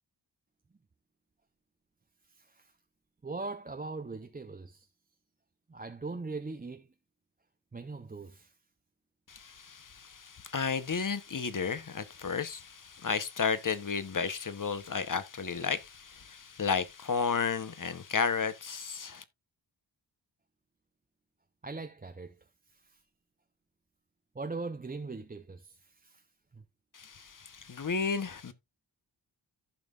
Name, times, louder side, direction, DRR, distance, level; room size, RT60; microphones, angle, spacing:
voice 1, 2.3-2.7 3.2-4.9 5.7-6.9 7.7-8.5 21.6-22.4 22.7-23.0 24.3-26.2 26.5-26.6, right 3 dB, 20° right, 0.5 m, -40 dB
voice 2, 9.3-19.2 26.9-28.5, left 5 dB, 45° left, 0.8 m, -33 dB
14.5 x 5.5 x 2.4 m
wide cardioid pair, 115°, 46 cm